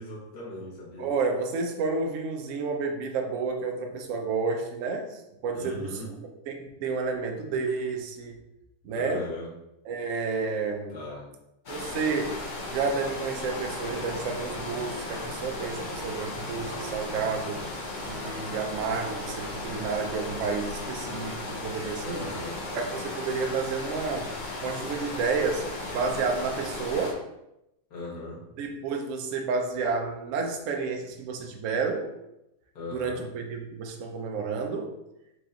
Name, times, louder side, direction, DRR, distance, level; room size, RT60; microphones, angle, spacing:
voice 1, 0.0-1.1 5.5-6.1 8.9-9.5 10.9-11.3 22.0-22.6 27.9-28.4 32.7-33.2, left 2 dB, 55° left, -6 dB, 1.8 m, -38 dB
voice 2, 1.0-6.0 6.5-8.4 8.8-9.3 9.9-11.0 11.7-17.6 18.0-22.3 22.7-27.2 28.6-32.1 32.9-34.9, right 4 dB, 85° right, 3 dB, 0.6 m, -30 dB
sound 1, 11.7-27.1, left 2 dB, 85° left, 0.4 m, -36 dB
4.5 x 2.9 x 3.7 m, 0.88 s
omnidirectional pair, 2.2 m